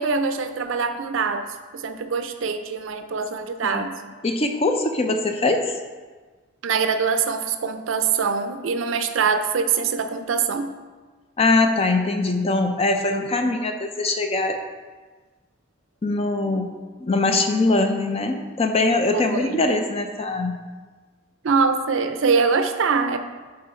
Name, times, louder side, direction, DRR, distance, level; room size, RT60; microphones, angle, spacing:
voice 1, 0.0-1.5 1.7-3.9 6.6-10.7 19.1-19.7 21.4-23.2, right 5 dB, 70° right, 9 dB, 0.5 m, -23 dB
voice 2, 4.2-5.7 11.4-14.6 16.0-20.6, left 2 dB, 30° left, 5 dB, 0.5 m, -22 dB
8.5 x 3.7 x 4.4 m, 1.4 s
head